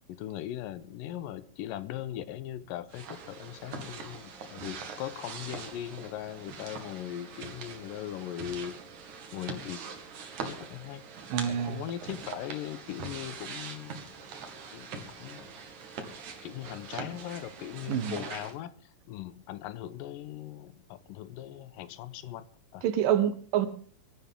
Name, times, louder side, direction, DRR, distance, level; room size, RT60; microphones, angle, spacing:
voice 1, 0.1-8.8 9.3-9.8 10.4-11.0 11.5-14.0 14.7-15.6 16.4-22.5 22.7-22.8, left 12 dB, 90° left, 2.5 m, -39 dB
sound 1, 2.9-18.5, right 5 dB, 65° right, 3.4 m, -43 dB
voice 2, 11.3-11.8 17.9-18.2 22.8-23.7, right 10 dB, 85° right, 2.9 m, -27 dB
24.5 x 12.5 x 3.7 m
omnidirectional pair, 3.8 m